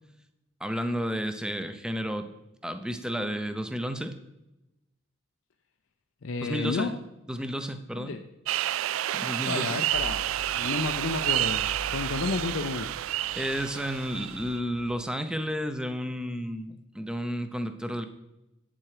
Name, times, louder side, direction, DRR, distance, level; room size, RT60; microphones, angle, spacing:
voice 1, 0.6-2.3 2.6-4.1 6.4-6.9 7.3-8.2 9.1-9.8 13.3-18.1, equal, 5° right, 9 dB, 0.6 m, -32 dB
voice 2, 6.2-6.9 8.0-8.2 9.5-10.2 10.5-12.9, left 3 dB, 75° left, 5 dB, 0.6 m, -31 dB
sound 1, 8.5-14.6, right 13 dB, 85° right, 0.3 m, -30 dB
sound 2, 9.9-14.9, right 1 dB, 65° right, 0.7 m, -44 dB
8.7 x 7.5 x 4.9 m, 0.93 s
head